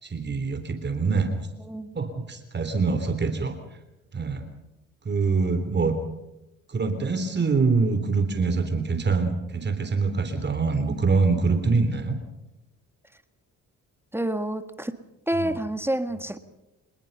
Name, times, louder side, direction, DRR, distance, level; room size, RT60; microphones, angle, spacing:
voice 1, 0.0-1.3 1.9-3.5 4.1-4.5 5.1-6.0 6.7-12.2 15.3-15.5, right 4 dB, 35° right, 7 dB, 3.5 m, -24 dB
voice 2, 1.6-1.9 14.1-15.0 15.3-16.4, right 1 dB, 10° right, 9 dB, 1.7 m, -28 dB
26.5 x 20.5 x 5.6 m, 0.95 s
cardioid pair, 90°, 30 cm